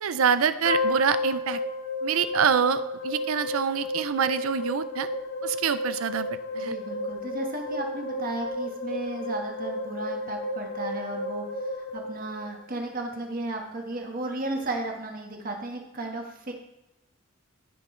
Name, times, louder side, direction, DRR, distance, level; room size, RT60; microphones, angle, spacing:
voice 1, 0.0-1.6 2.0-5.1 5.4-6.3 6.5-6.7, right 7 dB, 80° right, 13 dB, 0.5 m, -25 dB
sound 1, 0.6-12.9, left 2 dB, 70° left, 2.5 m, -32 dB
voice 2, 6.6-11.4 11.8-16.5, right 2 dB, 40° right, 2 dB, 1.4 m, -34 dB
15.0 x 5.4 x 3.2 m, 0.92 s
head